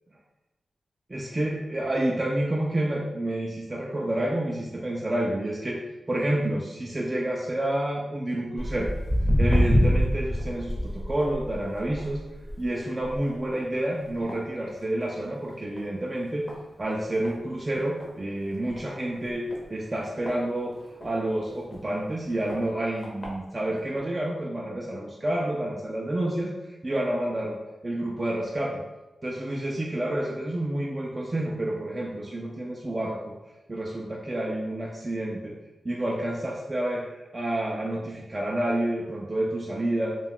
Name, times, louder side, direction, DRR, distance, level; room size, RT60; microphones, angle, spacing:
voice 1, 1.1-5.8 6.1-8.9 9.4-12.2 12.6-16.4 16.8-20.8 21.0-27.6 27.8-28.8 29.2-33.3 33.7-35.5 35.8-40.2, right 1 dB, 30° right, -3 dB, 0.4 m, -29 dB
Walk footsteps, 8.6-15.2 15.6-15.9 16.5-16.6 17.2-17.3 17.7-17.8 18.0-18.1 18.7-18.9 19.5-21.1 21.7-21.8 22.5-22.6 23.0-23.3 24.0-24.1, equal, 25° left, 0.8 m, -26 dB
2.2 x 2.2 x 3.5 m, 1.1 s
cardioid pair, 75°, 0 cm